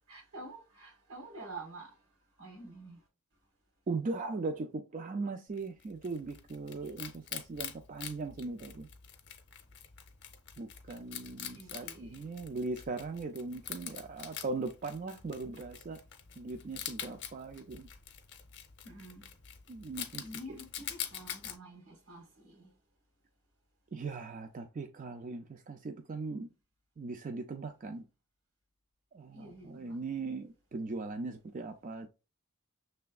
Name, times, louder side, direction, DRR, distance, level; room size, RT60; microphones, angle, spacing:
voice 1, 0.1-2.0 2.4-3.0 11.5-12.3 18.8-19.3 20.2-22.7 29.3-30.0, right 2 dB, 75° right, 1.6 m, -48 dB
voice 2, 3.9-8.9 10.6-16.0 16.4-17.9 19.7-20.3 23.9-26.5 27.0-28.1 29.1-32.1, right 3 dB, 35° right, 0.3 m, -39 dB
Wild animals, 5.6-21.6, left 9 dB, 50° left, 0.8 m, -45 dB
6.6 x 3.3 x 2.3 m
head